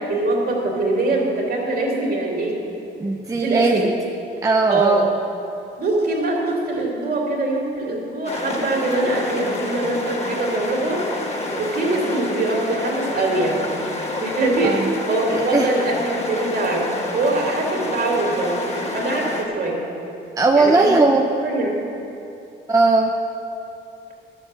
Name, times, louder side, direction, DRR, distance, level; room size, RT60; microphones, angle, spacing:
voice 1, 0.1-2.6 3.3-3.9 4.7-5.0 5.8-11.1 11.6-13.7 14.2-18.6 18.9-19.8 20.5-21.0 21.3-21.7, right 2 dB, 50° right, -2 dB, 3.0 m, -23 dB
voice 2, 3.0-4.0 4.4-5.1 14.6-14.9 15.5-15.7 17.5-17.6 20.4-21.3 22.7-23.1, right 3 dB, 15° right, 1 dB, 0.7 m, -18 dB
sound 1, 8.3-19.5, left 2 dB, 35° left, 1.7 m, -29 dB
12.0 x 7.3 x 7.7 m, 2.8 s
cardioid pair, 90°, 20 cm